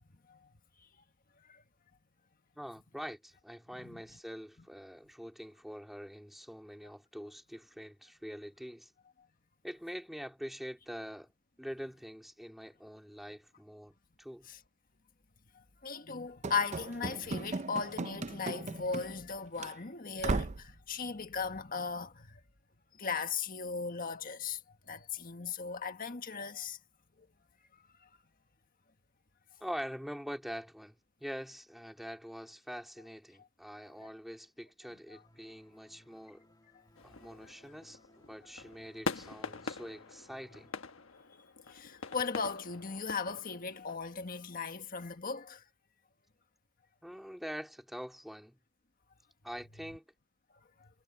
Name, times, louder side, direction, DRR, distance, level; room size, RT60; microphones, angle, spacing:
voice 1, 2.6-8.9 9.6-11.3 11.6-14.5 29.6-36.4 37.0-40.7 47.0-48.6 49.4-50.0, equal, ahead, 3.1 m, -45 dB
voice 2, 15.8-22.4 23.0-24.6 24.9-26.8 35.1-35.2 41.7-45.6 50.8-50.9, left 5 dB, 45° left, 1.6 m, -37 dB
Run / Slam, 16.4-19.3 19.6-19.7 20.2-20.7, right 3 dB, 35° right, 0.5 m, -36 dB
sound 1, 35.2-40.7, left 1 dB, 20° left, 2.6 m, -63 dB
sound 2, 37.0-44.0, left 3 dB, 70° left, 1.3 m, -44 dB
head